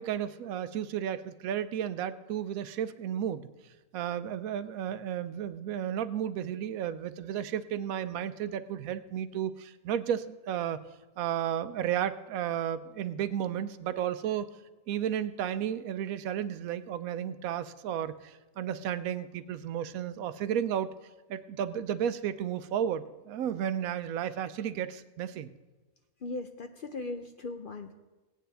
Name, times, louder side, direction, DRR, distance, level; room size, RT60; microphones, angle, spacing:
voice 1, 0.0-3.5 3.9-10.8 11.2-14.5 14.9-20.9 21.3-25.5, right 9 dB, 85° right, 13 dB, 1.0 m, -33 dB
voice 2, 26.2-27.9, left 3 dB, 55° left, 6 dB, 0.6 m, -38 dB
17.5 x 9.3 x 3.4 m, 1.2 s
omnidirectional pair, 1.4 m